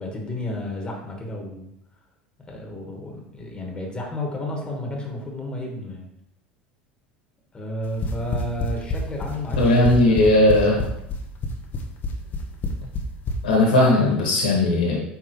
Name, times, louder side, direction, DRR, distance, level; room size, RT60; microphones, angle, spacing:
voice 1, 0.0-1.7 2.5-6.1 7.5-10.9, left 1 dB, 15° left, 0 dB, 1.7 m, -32 dB
sound 1, 7.8-13.4, left 3 dB, 35° left, 0.9 m, -27 dB
voice 2, 9.6-10.8 13.4-15.0, left 1 dB, 70° left, -2 dB, 1.9 m, -17 dB
9.0 x 3.4 x 3.2 m, 0.78 s
figure-of-eight pair, 70°, 5 cm